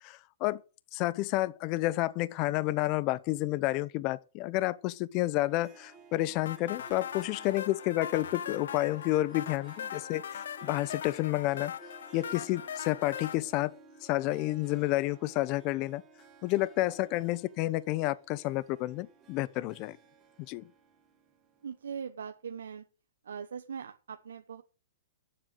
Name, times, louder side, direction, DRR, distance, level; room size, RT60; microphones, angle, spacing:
voice 1, 0.0-0.6 0.9-11.7 12.1-13.7 14.0-16.0 16.4-20.0 20.5-20.6, left 17 dB, 30° left, 0.6 m, -30 dB
Harp, 5.5-22.0, right 5 dB, 20° right, 2.0 m, -56 dB
sound 1, 6.5-13.4, left 8 dB, 70° left, 0.6 m, -40 dB
voice 2, 21.6-22.8 23.2-24.6, right 7 dB, 90° right, 1.0 m, -41 dB
8.8 x 7.7 x 7.6 m
hypercardioid pair, 160°, 0 cm